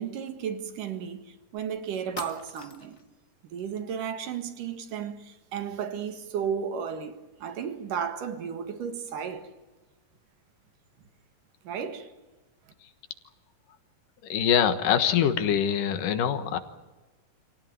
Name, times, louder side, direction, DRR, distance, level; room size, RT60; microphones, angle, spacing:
voice 1, 0.0-3.0 3.4-9.5 11.7-12.1, right 7 dB, 80° right, 3.4 m, -34 dB
sound 1, 1.6-1.7 2.2-3.1, left 5 dB, 60° left, 0.8 m, -43 dB
voice 2, 14.3-16.6, left 8 dB, 80° left, 3.0 m, -24 dB
27.0 x 17.5 x 9.4 m
omnidirectional pair, 3.7 m